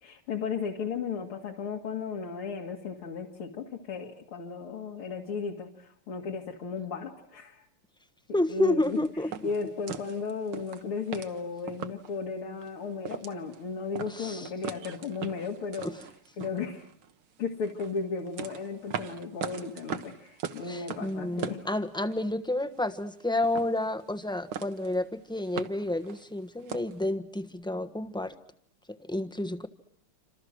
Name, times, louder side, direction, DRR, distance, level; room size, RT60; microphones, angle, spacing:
voice 1, 0.0-7.7 8.5-15.9 16.4-16.9 17.4-21.7, left 5 dB, 75° left, 0 dB, 2.9 m, -35 dB
voice 2, 8.3-9.3 14.1-14.5 20.7-28.3 29.1-29.7, left 1 dB, 5° left, 9 dB, 0.7 m, -30 dB
sound 1, 8.8-12.2 12.6-12.7 13.0-13.6 14.0-17.1 17.6-22.3 22.6-23.2 23.4-24.3 24.5-25.0 25.3-27.0, right 8 dB, 70° right, 2.1 m, -40 dB
28.5 x 27.0 x 6.4 m, 0.65 s
omnidirectional pair, 2.4 m